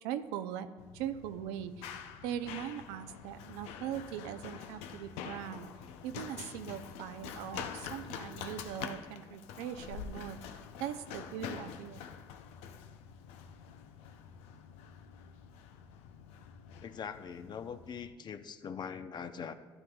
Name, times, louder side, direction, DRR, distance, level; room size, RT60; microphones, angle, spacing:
voice 1, 0.0-0.7 0.9-5.7 6.0-12.0, right 10 dB, 90° right, 9 dB, 0.5 m, -40 dB
Run, 0.8-18.1, left 8 dB, 85° left, 0.6 m, -46 dB
voice 2, 16.8-19.5, left 7 dB, 45° left, 10 dB, 0.6 m, -42 dB
12.5 x 9.8 x 2.3 m, 1.4 s
supercardioid pair, 85°, 11 cm